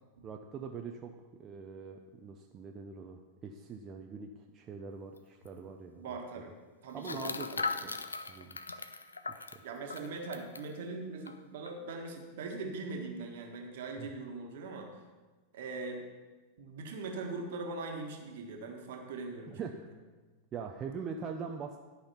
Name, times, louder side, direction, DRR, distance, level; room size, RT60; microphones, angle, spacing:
voice 1, 0.2-1.1 1.4-6.2 6.9-7.9 8.3-8.7 9.3-9.6 14.0-14.1 19.5-19.7 20.5-21.8, right 5 dB, 30° right, 3 dB, 0.6 m, -43 dB
sound 1, 5.2-5.3 5.4-5.6 7.0-10.7 11.3-11.4 11.7-11.9, left 4 dB, 75° left, 0.4 m, -39 dB
voice 2, 6.0-6.5 6.8-7.2 7.5-7.9 9.6-14.9 15.5-16.0 16.6-19.6, right 3 dB, 55° right, 2 dB, 1.5 m, -41 dB
12.0 x 5.8 x 5.7 m, 1.3 s
figure-of-eight pair, 90°, 0 cm